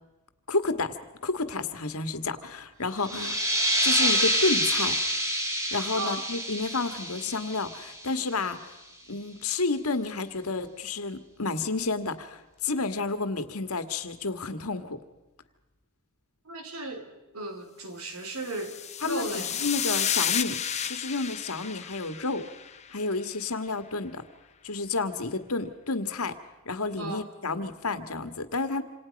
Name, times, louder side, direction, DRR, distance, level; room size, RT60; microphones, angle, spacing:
voice 1, 0.5-1.0 1.2-3.4 3.8-5.0 5.7-8.7 9.1-15.0 19.0-22.5 22.9-24.2 24.6-26.4 26.7-28.8, left 3 dB, 80° left, 10 dB, 1.8 m, -30 dB
sound 1, 3.0-8.4, equal, 15° right, 3.0 m, -27 dB
voice 2, 16.5-17.1 17.3-19.5 27.0-27.2, right 2 dB, 75° right, 6 dB, 3.6 m, -36 dB
sound 2, 18.4-22.9, left 9 dB, 30° left, 1.2 m, -31 dB
27.5 x 27.5 x 5.3 m, 1.0 s
head